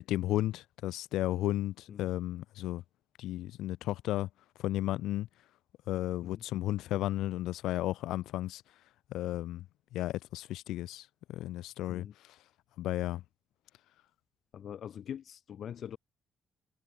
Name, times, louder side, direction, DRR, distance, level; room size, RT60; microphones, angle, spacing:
voice 1, 0.0-2.8 3.2-4.3 4.6-5.3 5.9-8.6 9.1-9.7 9.9-12.4 12.8-13.2, left 15 dB, 85° left, 3.5 m, -34 dB
voice 2, 14.5-16.0, left 9 dB, 65° left, 1.5 m, -43 dB
cardioid pair, 90°, 0 cm